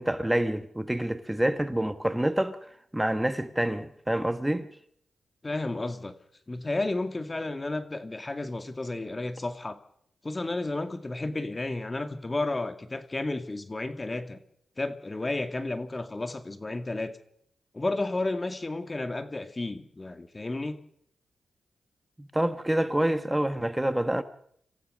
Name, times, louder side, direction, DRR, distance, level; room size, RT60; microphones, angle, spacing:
voice 1, 0.0-4.7 22.2-24.2, right 1 dB, 10° right, 1.3 m, -27 dB
voice 2, 5.4-6.1 6.5-9.8 10.2-14.4 14.8-17.2 17.7-20.8, left 2 dB, 30° left, 2.1 m, -32 dB
26.5 x 15.0 x 6.6 m
cardioid pair, 55°, 0 cm